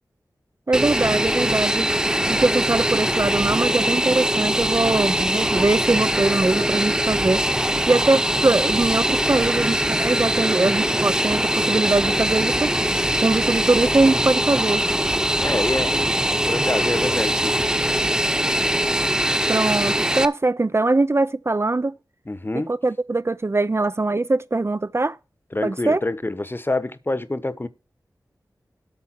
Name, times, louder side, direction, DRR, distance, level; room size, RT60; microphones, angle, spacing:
Fixed-wing aircraft airplane, 0.7-20.2, right 1 dB, 10° right, 1.0 m, -22 dB
voice 1, 0.7-1.9 2.3-7.4 7.9-12.7 13.2-14.9 19.5-21.9 22.7-25.2 25.6-26.0, right 2 dB, 35° right, 0.5 m, -21 dB
voice 2, 15.4-16.1 16.5-17.5 22.3-22.7 25.5-27.7, left 2 dB, 30° left, 1.1 m, -26 dB
8.7 x 5.7 x 7.5 m
cardioid pair, 40°, 7 cm